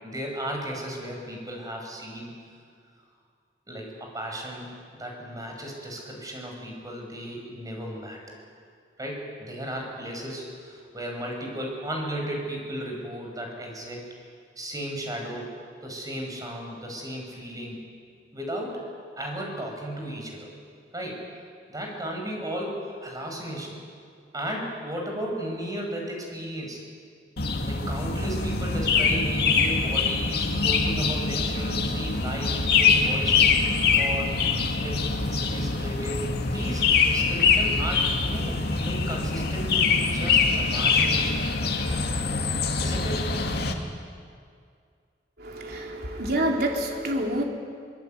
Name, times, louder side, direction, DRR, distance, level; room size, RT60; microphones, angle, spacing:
voice 1, 0.0-2.3 3.7-4.7 5.0-8.2 9.0-14.1 14.6-15.5 15.8-17.8 18.3-18.8 19.2-20.5 20.9-21.2 21.7-23.8 24.3-26.8 27.7-34.3 34.8-41.4 42.8-43.3, right 1 dB, 20° right, 1 dB, 6.1 m, -35 dB
sound 1, 27.4-43.7, left 4 dB, 65° left, 2.3 m, -24 dB
voice 2, 45.4-47.4, right 1 dB, 60° right, 1 dB, 3.5 m, -27 dB
24.5 x 21.0 x 9.1 m, 2.2 s
head